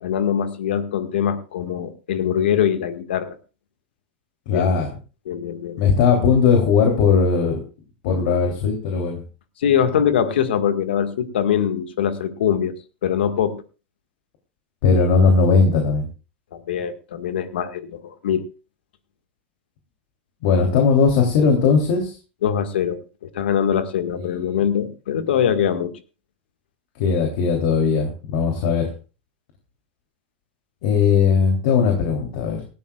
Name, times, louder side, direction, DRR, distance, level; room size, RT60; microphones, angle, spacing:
voice 1, 0.0-3.4 4.5-4.7 5.3-5.8 9.6-12.7 13.0-13.6 16.5-18.4 22.4-23.0 23.3-25.9, left 9 dB, 80° left, 9 dB, 1.8 m, -22 dB
voice 2, 4.5-4.9 5.8-7.6 8.0-9.2 14.8-16.1 20.4-22.1 24.3-24.4 27.0-28.9 30.8-32.6, left 5 dB, 65° left, 2 dB, 3.3 m, -18 dB
18.5 x 15.0 x 2.4 m, 0.34 s
hypercardioid pair, 115°, 6 cm